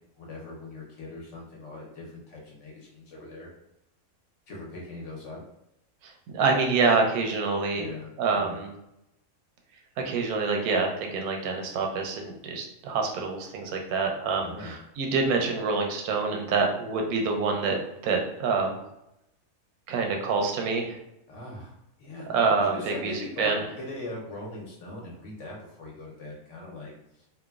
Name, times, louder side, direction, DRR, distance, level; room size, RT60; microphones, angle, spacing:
voice 1, 0.2-3.5 4.5-5.4 7.7-8.6 14.3-14.7 21.3-26.9 27.2-27.3, left 2 dB, 60° left, -3 dB, 1.0 m, -40 dB
voice 2, 6.3-7.8 8.2-8.7 10.0-17.8 18.0-18.8 19.9-21.0 22.3-23.1 23.4-23.6, right 4 dB, 90° right, 2 dB, 1.1 m, -26 dB
3.0 x 2.1 x 2.3 m, 0.83 s
omnidirectional pair, 1.5 m